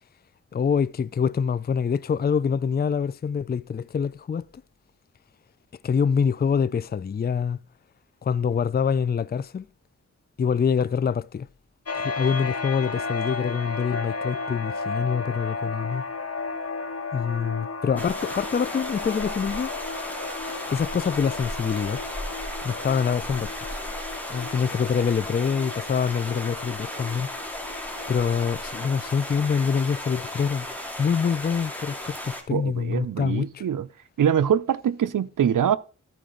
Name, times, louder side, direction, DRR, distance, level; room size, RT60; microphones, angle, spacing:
voice 1, 0.5-4.4 5.8-7.6 8.2-9.7 10.4-11.5 11.9-16.1 17.1-19.7 20.7-22.0 22.6-23.8 24.3-27.3 28.1-30.7 31.0-33.6, left 6 dB, 30° left, 0.4 m, -25 dB
sound 1, 11.9-29.1, left 4 dB, 50° left, 1.0 m, -34 dB
sound 2, 18.0-32.4, left 1 dB, 5° left, 2.1 m, -35 dB
voice 2, 32.5-33.9 34.2-35.8, right 9 dB, 80° right, 0.5 m, -23 dB
13.5 x 4.7 x 3.8 m
cardioid pair, 50°, 31 cm